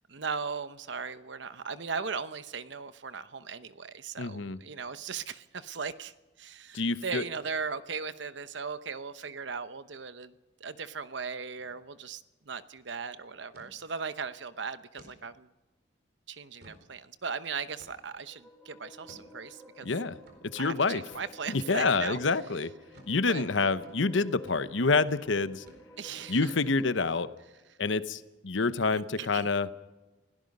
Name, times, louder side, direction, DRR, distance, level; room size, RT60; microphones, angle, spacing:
voice 1, 0.0-10.3 10.6-15.5 16.3-19.9 20.6-22.2 23.2-23.5 26.0-26.6 28.9-29.5, right 5 dB, 70° right, 13 dB, 0.9 m, -38 dB
voice 2, 4.2-4.6 6.7-7.2 19.8-20.2 20.5-21.0 21.5-22.7 23.1-25.6 26.3-27.3 27.8-29.7, left 3 dB, 80° left, 13 dB, 0.9 m, -27 dB
sound 1, 11.6-11.8 12.1-12.2 12.6-12.8 13.5-13.7 14.2-14.3 15.0-15.2 15.7-15.8 16.3-16.9 17.8-18.2 19.0-19.3 20.2-20.4 21.1-21.3 22.0-22.3 22.9-23.2 23.8-24.0 24.4-24.7 25.0-25.2 25.7-26.1, equal, 55° right, 4.3 m, -55 dB
sound 2, 18.1-27.3, equal, ahead, 4.8 m, -54 dB
28.0 x 17.0 x 5.4 m, 1.1 s
head